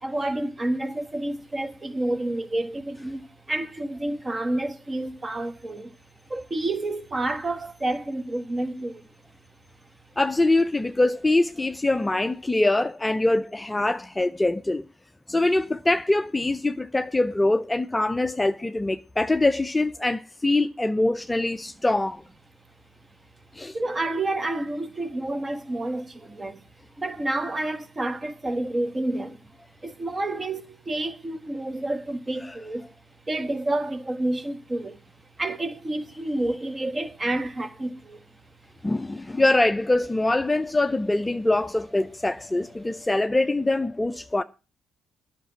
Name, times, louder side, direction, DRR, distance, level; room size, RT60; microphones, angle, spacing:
voice 1, 0.0-5.9 6.3-9.0 23.7-26.6 27.0-29.4 29.8-32.9 33.3-35.0 35.4-38.2, right 2 dB, 25° right, 1.5 m, -29 dB
voice 2, 10.2-14.8 15.3-22.2 23.5-23.8 32.4-32.6 38.8-44.4, left 2 dB, 15° left, 0.6 m, -23 dB
10.5 x 5.9 x 8.3 m
cardioid pair, 90°, 0 cm